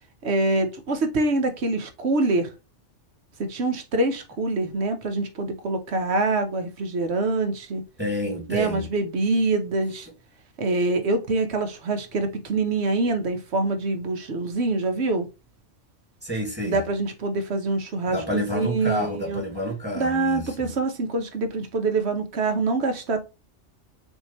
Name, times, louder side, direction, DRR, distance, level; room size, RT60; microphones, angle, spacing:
voice 1, 0.2-2.5 3.4-7.8 8.5-10.1 10.6-15.3 16.6-19.4 19.9-23.3, right 2 dB, 65° right, 1.2 m, -25 dB
voice 2, 8.0-8.8 16.2-16.8 18.1-20.7, equal, 10° right, 2.2 m, -29 dB
6.4 x 2.8 x 3.0 m
omnidirectional pair, 1.3 m